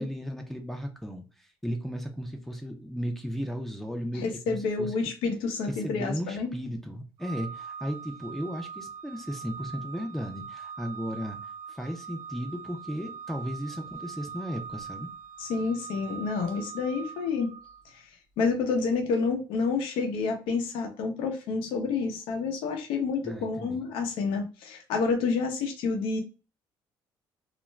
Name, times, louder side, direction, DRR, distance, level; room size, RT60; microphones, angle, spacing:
voice 1, 0.0-4.9 5.7-15.1 23.2-23.8, equal, 5° left, 3 dB, 0.5 m, -35 dB
voice 2, 4.1-6.5 15.4-17.5 17.8-18.1 18.4-26.2, left 4 dB, 85° left, 3 dB, 0.6 m, -29 dB
Organ, 7.2-17.9, right 6 dB, 70° right, 0.5 m, -42 dB
2.4 x 2.1 x 3.1 m, 0.32 s
cardioid pair, 90°, 9 cm